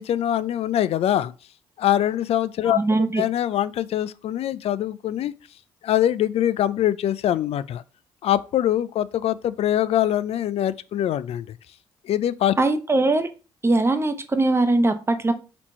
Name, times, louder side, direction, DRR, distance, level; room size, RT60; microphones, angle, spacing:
voice 1, 0.0-1.3 1.8-2.8 3.2-5.3 5.8-7.8 8.2-11.6 12.0-12.5, left 11 dB, 65° left, 0.4 m, -23 dB
voice 2, 2.6-3.2 12.6-13.3 13.6-15.3, right 2 dB, 20° right, 0.8 m, -21 dB
4.3 x 2.9 x 4.2 m
supercardioid pair, 70°, 11 cm